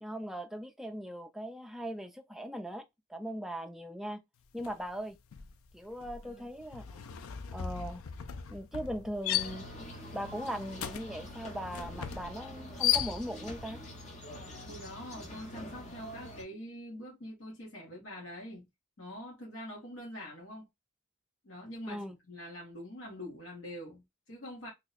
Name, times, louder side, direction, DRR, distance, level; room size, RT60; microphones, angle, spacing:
voice 1, 0.0-2.8 3.1-4.2 4.5-5.2 5.7-7.0 7.5-8.0 8.5-9.7 10.1-13.8 21.9-22.2, equal, ahead, 0.3 m, -39 dB
sound 1, 4.6-4.9 5.2-13.6, left 11 dB, 90° left, 0.4 m, -36 dB
sound 2, 9.3-16.4, equal, 35° left, 0.9 m, -46 dB
voice 2, 14.7-18.7 19.0-20.7 21.4-24.7, equal, 70° left, 1.3 m, -45 dB
2.9 x 2.2 x 4.0 m
head